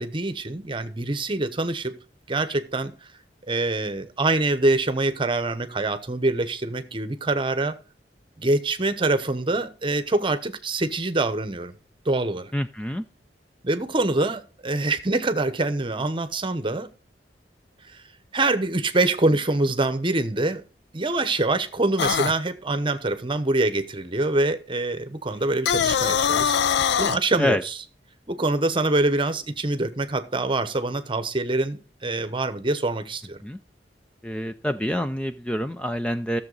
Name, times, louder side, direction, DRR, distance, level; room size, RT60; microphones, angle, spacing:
voice 1, 0.0-1.9 2.3-2.9 3.5-7.8 8.4-11.8 12.0-12.5 13.6-16.9 17.9-18.0 18.3-20.6 20.9-26.6 27.0-27.8 28.3-33.4, right 2 dB, 30° right, 0.9 m, -25 dB
voice 2, 12.5-13.0 27.4-27.6 33.4-33.6 34.2-36.4, left 1 dB, 5° left, 0.4 m, -26 dB
sound 1, 22.0-22.3 25.5-27.2, left 8 dB, 70° left, 0.4 m, -22 dB
14.0 x 7.1 x 4.0 m
head